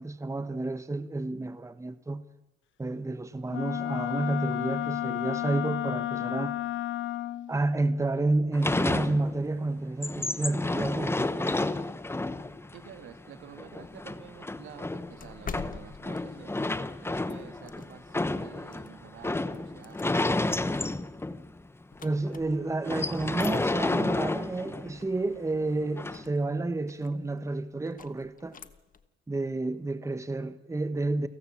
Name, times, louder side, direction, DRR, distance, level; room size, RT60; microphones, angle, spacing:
voice 1, 0.0-2.2 2.8-6.6 7.5-11.7 22.0-28.6 29.3-31.3, right 2 dB, 15° right, 1.2 m, -30 dB
Wind instrument woodwind instrument, 3.5-7.5, left 13 dB, 75° left, 0.8 m, -32 dB
sound 1, 8.5-9.6 9.9-21.6 22.0-22.1 22.3-22.5 22.8-25.0 26.0-26.2, left 2 dB, 10° left, 1.0 m, -31 dB
voice 2, 12.7-16.7 17.0-20.4, right 9 dB, 80° right, 2.5 m, -49 dB
sound 2, 13.8-18.2 18.7-22.8 23.2-29.1, left 6 dB, 45° left, 1.4 m, -48 dB
29.5 x 18.0 x 7.4 m
cardioid pair, 90°, 20 cm